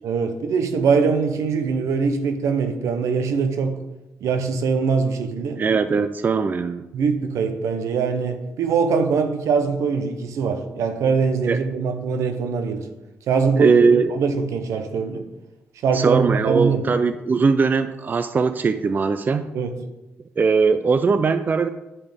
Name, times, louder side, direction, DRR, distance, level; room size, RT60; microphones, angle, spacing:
voice 1, 0.0-3.8 4.2-5.6 6.9-12.9 13.3-13.8 14.1-15.3 15.8-16.8 19.5-19.7, right 5 dB, 80° right, 0.8 m, -22 dB
voice 2, 5.6-6.9 11.5-11.6 13.6-14.1 15.9-19.5 20.4-21.7, right 5 dB, 35° right, 0.4 m, -20 dB
9.7 x 5.2 x 3.6 m
cardioid pair, 80°, 5 cm